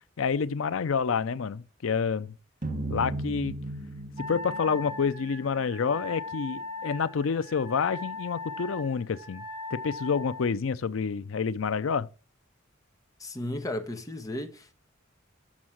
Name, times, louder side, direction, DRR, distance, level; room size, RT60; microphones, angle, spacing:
voice 1, 0.2-2.3 2.9-3.6 4.3-9.4 9.7-12.1, left 6 dB, 90° left, 0.5 m, -28 dB
sound 1, 2.6-5.8, right 1 dB, 45° right, 1.5 m, -36 dB
Wind instrument woodwind instrument, 4.2-10.5, left 2 dB, 25° right, 1.9 m, -39 dB
voice 2, 13.2-14.9, left 1 dB, 20° left, 1.1 m, -35 dB
7.3 x 6.3 x 6.2 m
head